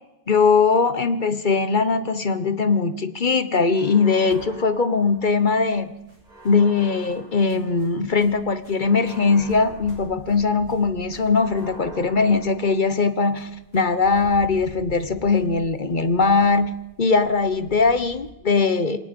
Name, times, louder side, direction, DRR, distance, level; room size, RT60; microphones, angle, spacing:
voice 1, 0.3-5.9 6.4-16.7 17.0-19.0, left 4 dB, 40° left, 12 dB, 1.1 m, -20 dB
sound 1, 3.7-5.6 6.2-8.1 8.8-10.6 11.3-13.2, right 1 dB, 30° right, 5.3 m, -45 dB
sound 2, 4.3-18.3, right 2 dB, 80° right, 8.4 m, -47 dB
27.5 x 18.0 x 5.3 m, 0.94 s
omnidirectional pair, 1.3 m